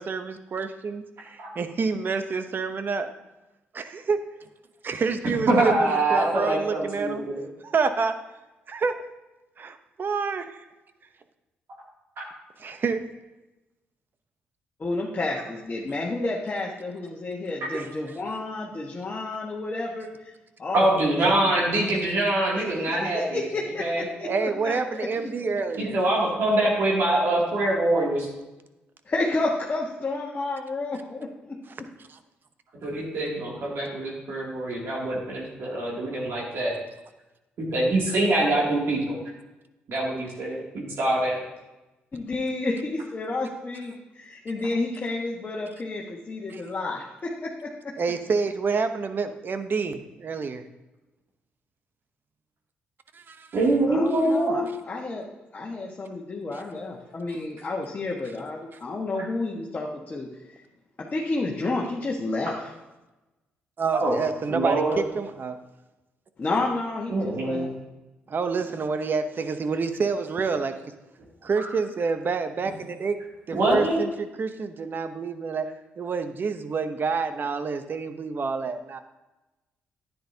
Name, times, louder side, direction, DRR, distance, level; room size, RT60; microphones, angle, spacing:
voice 1, 0.0-3.1 3.7-4.2 4.8-7.2 7.6-8.1 8.7-9.0 9.6-10.6 12.6-13.0 17.7-17.9 24.2-26.0 32.1-32.2 46.5-46.6 48.0-50.6 53.1-53.5 63.8-65.6 68.3-70.7 71.4-73.2 73.5-75.7 76.0-79.0, right 5 dB, 50° right, 9 dB, 0.8 m, -28 dB
voice 2, 5.5-7.4 17.6-17.7 20.7-23.4 23.8-24.0 25.8-28.3 32.8-36.7 37.6-39.2 39.9-41.4 53.5-54.7 63.9-64.2 64.5-65.0 67.1-67.7 71.6-71.7 73.5-74.0, right 2 dB, 65° right, -4 dB, 2.5 m, -24 dB
voice 3, 14.8-20.3 20.6-21.6 22.5-25.6 29.0-31.6 42.1-47.9 53.9-55.2 55.5-60.3 60.5-60.6 61.0-62.5 66.4-67.7, left 2 dB, 35° left, -3 dB, 1.4 m, -31 dB
10.0 x 9.4 x 2.8 m, 1.0 s
supercardioid pair, 65°, 4 cm